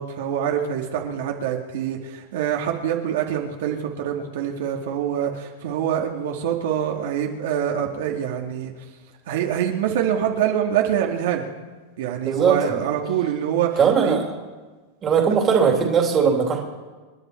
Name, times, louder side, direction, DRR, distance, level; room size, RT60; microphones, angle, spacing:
voice 1, 0.0-8.9 9.3-11.5 12.0-14.2, right 9 dB, 65° right, 1 dB, 2.1 m, -25 dB
voice 2, 12.2-12.6 13.8-14.2 15.0-16.6, right 6 dB, 20° right, 1 dB, 2.8 m, -19 dB
29.0 x 10.0 x 4.5 m, 1.3 s
supercardioid pair, 160°, 0 cm